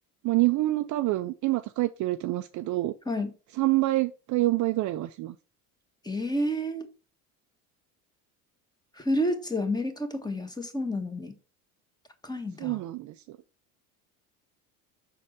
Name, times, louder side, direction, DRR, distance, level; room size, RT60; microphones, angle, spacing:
voice 1, 0.2-2.9 3.6-5.3 12.6-13.1, right 18 dB, 45° right, 0.5 m, -26 dB
voice 2, 6.0-6.9 9.0-11.3 12.2-12.8, left 1 dB, 10° left, 1.2 m, -30 dB
6.3 x 4.2 x 4.7 m
supercardioid pair, 95°, 44 cm